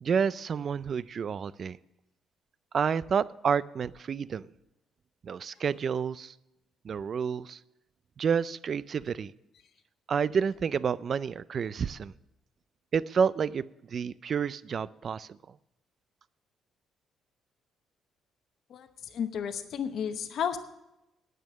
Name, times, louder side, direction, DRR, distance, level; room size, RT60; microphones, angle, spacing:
voice 1, 0.0-1.8 2.7-4.4 5.2-6.3 6.8-7.6 8.2-9.3 10.1-12.1 12.9-15.4, right 6 dB, 45° right, 18 dB, 0.4 m, -29 dB
voice 2, 18.7-20.6, left 8 dB, 65° left, 8 dB, 0.8 m, -33 dB
9.3 x 8.5 x 7.3 m, 0.91 s
cardioid pair, 105°, 0 cm